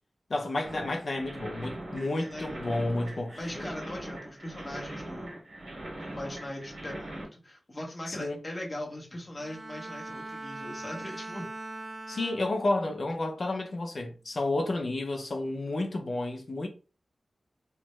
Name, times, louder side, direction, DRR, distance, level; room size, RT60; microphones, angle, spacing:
voice 1, 0.3-3.6 8.1-8.4 12.1-16.7, left 2 dB, 60° left, 0.6 m, -31 dB
sound 1, 0.6-7.2, right 1 dB, 85° right, 1.6 m, -41 dB
voice 2, 2.1-2.8 3.3-5.4 6.0-11.5, left 1 dB, 30° left, 1.0 m, -40 dB
Bowed string instrument, 9.3-12.9 13.4-13.8, right 2 dB, 35° right, 0.3 m, -42 dB
3.3 x 2.0 x 3.1 m
wide cardioid pair, 100°, 0 cm